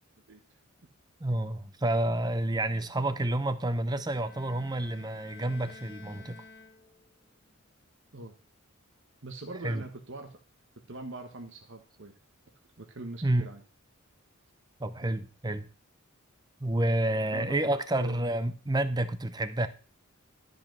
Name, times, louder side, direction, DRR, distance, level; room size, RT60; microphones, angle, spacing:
voice 1, 1.2-6.4 9.6-9.8 13.2-13.5 14.8-15.7 16.6-19.7, right 1 dB, 20° right, 0.7 m, -29 dB
Bowed string instrument, 4.1-7.2, left 4 dB, 50° left, 1.4 m, -51 dB
voice 2, 9.2-10.4 10.9-12.1 12.8-13.6 17.3-17.6 18.0-18.3, right 2 dB, 60° right, 1.3 m, -42 dB
13.0 x 5.4 x 6.1 m
head